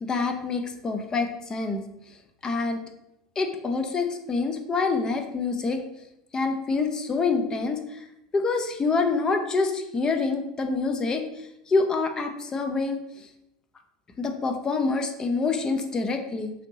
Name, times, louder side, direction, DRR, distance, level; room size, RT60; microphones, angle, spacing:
voice 1, 0.0-1.8 2.4-2.8 3.4-5.8 6.3-8.1 8.3-13.3 14.2-16.5, left 4 dB, 25° left, 6 dB, 0.6 m, -26 dB
5.1 x 2.7 x 2.8 m, 0.84 s
figure-of-eight pair, 80°, 3 cm